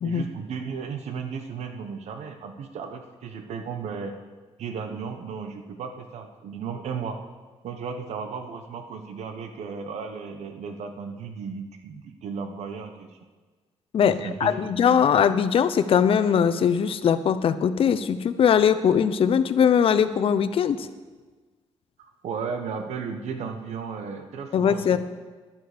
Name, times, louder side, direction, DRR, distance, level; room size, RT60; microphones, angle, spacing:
voice 1, 0.0-4.1 4.6-7.2 7.6-13.2 14.0-15.0 22.0-25.0, right 5 dB, 80° right, 6 dB, 1.1 m, -35 dB
voice 2, 13.9-20.9 24.5-25.0, left 7 dB, 55° left, 11 dB, 0.7 m, -21 dB
12.5 x 11.5 x 5.1 m, 1.4 s
cardioid pair, 125°, 11 cm